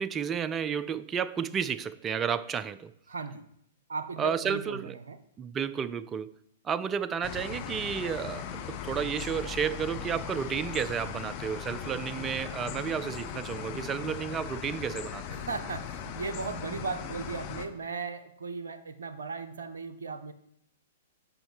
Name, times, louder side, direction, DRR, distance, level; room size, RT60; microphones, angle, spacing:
voice 1, 0.0-2.9 4.2-5.0 5.4-6.3 6.6-15.4, right 7 dB, 20° right, 0.4 m, -32 dB
voice 2, 3.1-3.4 3.9-5.2 15.3-20.3, right 4 dB, 65° right, 0.6 m, -37 dB
sound 1, 7.2-17.7, left 8 dB, 35° left, 0.8 m, -38 dB
7.6 x 5.3 x 4.6 m
figure-of-eight pair, 110°, 0 cm